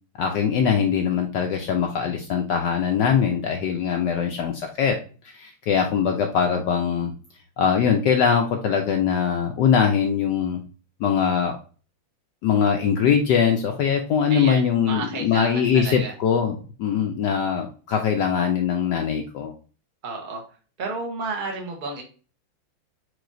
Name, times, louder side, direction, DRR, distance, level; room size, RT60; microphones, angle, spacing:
voice 1, 0.2-5.0 5.2-7.1 7.6-10.6 11.0-11.6 12.4-19.5, left 7 dB, 70° left, 3 dB, 1.1 m, -22 dB
voice 2, 14.3-16.1 20.0-20.4 20.8-22.0, right 4 dB, 30° right, 0 dB, 1.0 m, -31 dB
4.8 x 4.0 x 2.5 m, 0.37 s
omnidirectional pair, 2.2 m